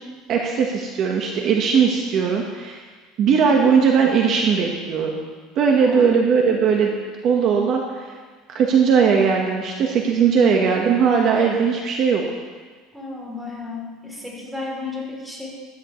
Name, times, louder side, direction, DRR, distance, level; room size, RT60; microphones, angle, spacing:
voice 1, 0.3-2.8 3.2-5.2 5.5-6.9 7.2-8.1 8.5-12.2, right 6 dB, 45° right, 1 dB, 1.4 m, -19 dB
voice 2, 5.8-6.2 12.9-15.5, left 3 dB, 5° right, -3 dB, 3.4 m, -33 dB
15.5 x 13.5 x 3.2 m, 1.4 s
cardioid pair, 135°, 0 cm